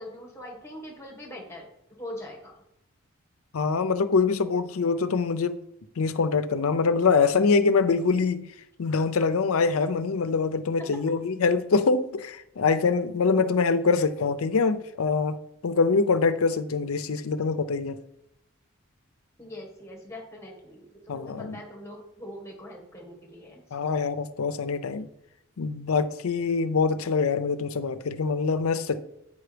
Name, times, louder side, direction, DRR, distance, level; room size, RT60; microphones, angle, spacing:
voice 1, 0.0-2.6 10.8-11.2 19.4-23.6, left 1 dB, 15° left, 1.6 m, -42 dB
voice 2, 3.5-5.6 6.0-8.5 8.8-18.0 21.1-21.6 23.7-25.1 25.6-29.0, left 4 dB, 85° left, 0.5 m, -24 dB
7.9 x 5.2 x 5.0 m
head